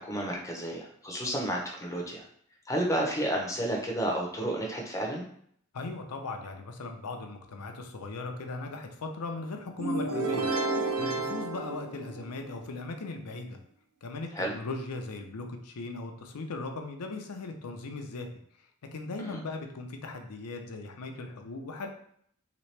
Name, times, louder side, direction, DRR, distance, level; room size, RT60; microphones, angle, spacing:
voice 1, 0.0-2.3 2.7-5.2 14.3-14.5 19.2-19.4, right 1 dB, 15° left, -1 dB, 0.7 m, -31 dB
voice 2, 5.7-10.5 11.0-13.6 14.0-18.3 18.9-21.9, left 3 dB, 85° left, 4 dB, 0.6 m, -38 dB
sound 1, 9.8-12.6, right 2 dB, 75° right, 0.6 m, -31 dB
3.3 x 3.0 x 3.2 m, 0.66 s
head